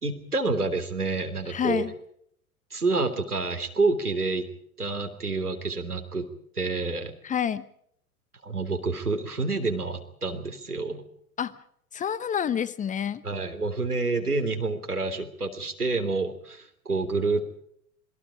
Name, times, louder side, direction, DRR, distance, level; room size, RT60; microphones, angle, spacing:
voice 1, 0.0-1.9 2.7-4.5 4.8-6.3 6.6-7.1 8.4-11.0 13.2-17.6, right 3 dB, 85° right, 7 dB, 3.4 m, -28 dB
voice 2, 1.5-1.9 7.2-7.6 11.4-11.5 11.9-13.2, left 8 dB, 15° left, 16 dB, 1.0 m, -28 dB
27.0 x 22.0 x 5.1 m, 0.68 s
figure-of-eight pair, 95°, 44 cm